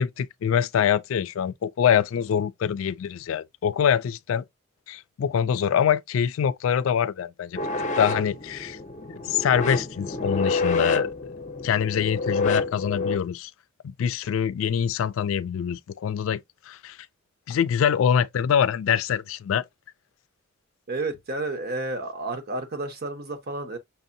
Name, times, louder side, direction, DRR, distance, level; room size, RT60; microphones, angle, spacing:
voice 1, 0.0-4.4 4.9-7.6 8.0-8.8 9.3-11.1 11.6-13.5 13.8-16.4 16.7-17.0 17.5-19.6, left 8 dB, 75° left, 0.3 m, -24 dB
sound 1, 7.6-13.2, left 3 dB, 40° left, 0.6 m, -28 dB
voice 2, 20.9-23.8, right 2 dB, 50° right, 1.0 m, -31 dB
5.7 x 2.7 x 2.6 m
head